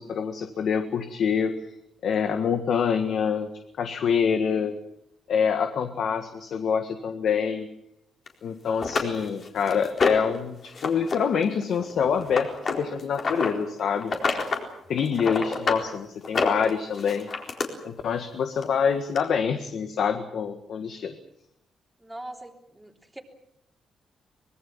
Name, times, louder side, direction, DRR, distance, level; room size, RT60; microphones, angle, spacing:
voice 1, 0.0-1.5 2.0-3.5 3.8-4.8 5.3-7.7 8.4-14.1 14.9-17.3 17.8-21.2, left 6 dB, 60° left, 7 dB, 1.7 m, -26 dB
sound 1, 8.3-8.4 8.8-10.4 10.7-11.2 11.4-13.5 14.0-14.7 15.0-15.8 16.2-17.7 18.6-18.7 19.2-19.3, left 4 dB, 40° left, 4.1 m, -27 dB
voice 2, 22.0-23.2, right 1 dB, 5° right, 1 dB, 3.3 m, -42 dB
24.5 x 21.5 x 7.3 m, 0.78 s
cardioid pair, 155°, 0 cm